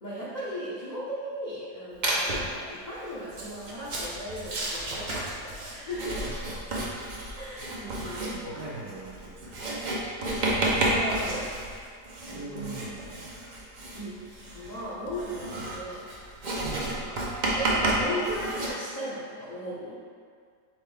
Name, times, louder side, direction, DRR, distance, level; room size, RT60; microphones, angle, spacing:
voice 1, 0.0-6.2 7.3-8.3 10.2-11.5 12.3-12.9 13.9-14.2 14.5-16.0 17.0-17.2 17.5-20.0, equal, 45° left, -10 dB, 0.6 m, -36 dB
Writing, 2.0-2.6 3.3-18.7, right 1 dB, 80° right, 0.4 m, -31 dB
voice 2, 6.2-6.6 7.9-9.6 12.2-13.3 16.4-17.0, right 3 dB, 65° right, -6 dB, 1.0 m, -42 dB
4.4 x 3.6 x 3.3 m, 2.1 s
omnidirectional pair, 1.8 m